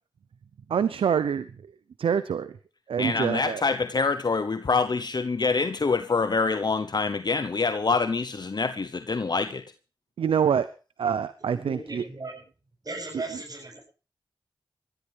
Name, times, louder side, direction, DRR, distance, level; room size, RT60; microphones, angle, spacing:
voice 1, 0.7-1.4 2.0-2.5 2.9-3.6 10.2-10.7 11.0-12.0, right 7 dB, 90° right, 0.7 m, -25 dB
voice 2, 3.0-9.6, left 4 dB, 50° left, 1.0 m, -26 dB
voice 3, 11.4-12.4 12.8-13.8, right 2 dB, 45° right, 7.6 m, -37 dB
20.5 x 14.5 x 3.5 m
cardioid pair, 40°, 9 cm